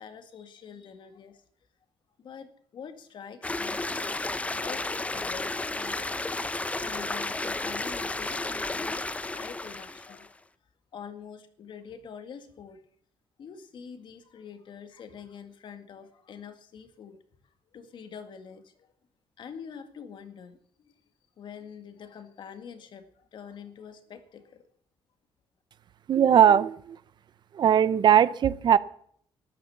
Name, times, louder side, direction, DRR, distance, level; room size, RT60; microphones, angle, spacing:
voice 1, 0.0-1.4 2.2-6.5 6.8-10.4 10.9-12.8 13.4-17.2 17.7-18.9 19.4-20.9 21.4-24.6, left 7 dB, 55° left, 8 dB, 1.9 m, -45 dB
sound 1, 3.4-10.3, left 2 dB, 15° left, 0.7 m, -32 dB
voice 2, 26.1-27.0 27.5-28.8, right 9 dB, 50° right, 16 dB, 0.7 m, -19 dB
13.0 x 11.0 x 7.1 m, 0.63 s
cardioid pair, 110°, 9 cm